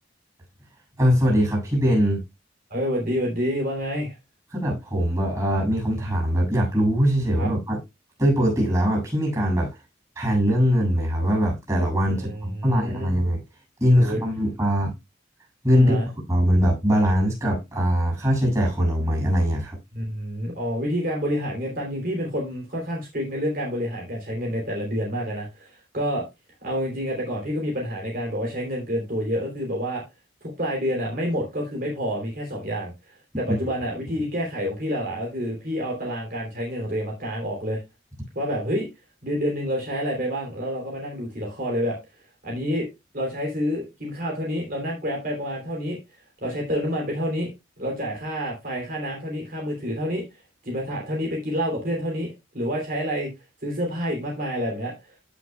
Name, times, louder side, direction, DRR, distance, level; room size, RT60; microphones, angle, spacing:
voice 1, 1.0-2.2 4.5-7.8 8.2-9.7 10.1-13.4 13.8-14.9 15.6-16.0 16.3-19.8, equal, 20° right, 6.6 m, -21 dB
voice 2, 2.7-4.2 7.4-7.5 12.1-13.2 13.9-14.2 15.7-16.1 19.9-26.2 26.6-30.0 30.4-37.8 38.3-38.9 39.2-42.0 42.4-42.9 43.1-46.0 46.4-47.5 47.8-50.2 50.6-53.3 53.6-55.1, equal, 50° right, 3.1 m, -28 dB
16.0 x 6.2 x 2.3 m
head